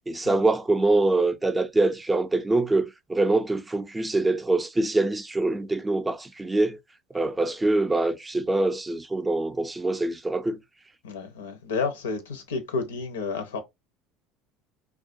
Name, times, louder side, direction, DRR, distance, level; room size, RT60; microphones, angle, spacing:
voice 1, 0.1-6.8 7.1-10.6, right 2 dB, 15° right, 0.4 m, -24 dB
voice 2, 11.0-13.6, left 4 dB, 90° left, 0.5 m, -31 dB
2.2 x 2.1 x 2.6 m
hypercardioid pair, 80°, 0 cm